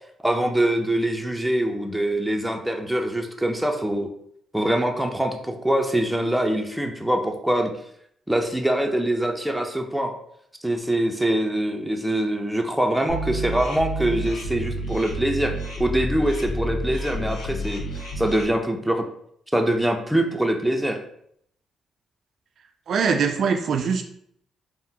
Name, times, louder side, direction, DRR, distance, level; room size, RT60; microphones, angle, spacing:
voice 1, 0.2-4.1 4.5-7.7 8.3-10.1 10.6-17.8 18.2-19.0 19.5-21.0, right 1 dB, 5° right, 3 dB, 0.5 m, -24 dB
sound 1, 13.1-18.4, right 1 dB, 75° left, 0.5 m, -30 dB
voice 2, 22.9-24.0, right 6 dB, 65° right, 4 dB, 0.3 m, -22 dB
3.5 x 2.1 x 2.7 m, 0.69 s
supercardioid pair, 60°, 0 cm